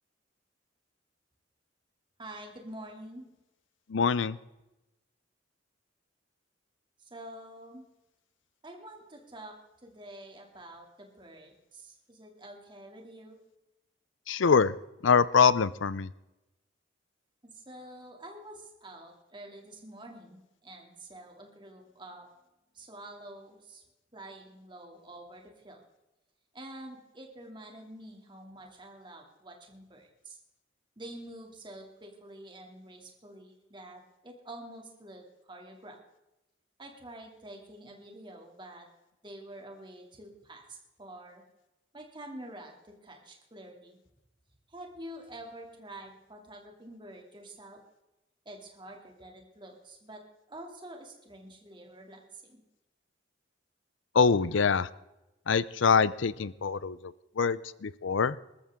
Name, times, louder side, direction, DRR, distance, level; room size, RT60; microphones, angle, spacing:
voice 1, 2.2-3.3 7.0-7.9 8.6-9.5 9.8-13.4 17.5-22.3 22.7-23.8 24.1-25.8 26.5-30.4 31.0-36.0 36.8-38.9 39.2-41.4 41.9-44.0 44.7-47.8 48.4-50.2 50.5-52.6, right 1 dB, 25° right, 1 dB, 2.7 m, -47 dB
voice 2, 3.9-4.4 14.3-14.7 15.0-16.1 54.1-54.9 55.5-58.4, left 5 dB, 70° left, 19 dB, 0.5 m, -24 dB
20.0 x 13.5 x 3.7 m, 0.96 s
head